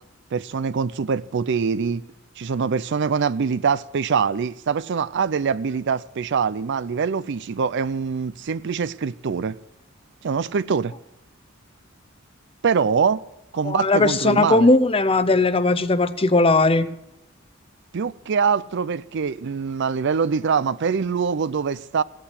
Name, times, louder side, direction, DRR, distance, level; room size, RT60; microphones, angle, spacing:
voice 1, 0.3-2.0 2.4-9.6 10.2-10.9 12.6-13.2 13.5-14.7 17.9-22.0, right 6 dB, 60° right, 0.5 m, -24 dB
voice 2, 13.6-16.9, left 2 dB, 30° left, 0.7 m, -18 dB
16.0 x 8.8 x 8.1 m
head